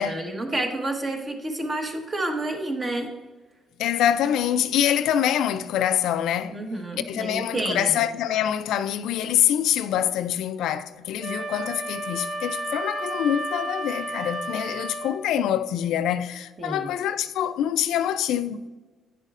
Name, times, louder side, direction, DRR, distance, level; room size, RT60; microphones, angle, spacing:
voice 1, 0.0-3.1 6.5-8.0 16.6-16.9, right 1 dB, 35° right, 1.2 m, -29 dB
voice 2, 3.8-6.6 7.0-18.6, left 10 dB, 85° left, 0.3 m, -25 dB
Wind instrument woodwind instrument, 11.2-15.2, right 1 dB, 70° right, 1.1 m, -32 dB
9.7 x 6.6 x 2.5 m
cardioid pair, 90°, 0 cm